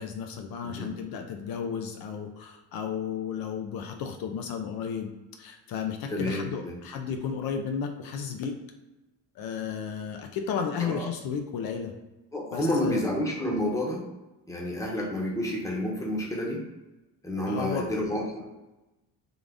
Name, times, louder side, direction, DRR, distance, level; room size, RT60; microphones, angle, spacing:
voice 1, 0.0-5.1 5.4-8.6 9.4-11.9 12.5-13.1 17.4-17.8, left 7 dB, 65° left, 4 dB, 0.5 m, -33 dB
voice 2, 6.1-6.8 10.8-11.1 12.3-14.0 14.5-16.6 17.2-18.4, left 1 dB, 10° left, -2 dB, 0.8 m, -29 dB
3.8 x 2.5 x 3.4 m, 1.0 s
cardioid pair, 130°, 38 cm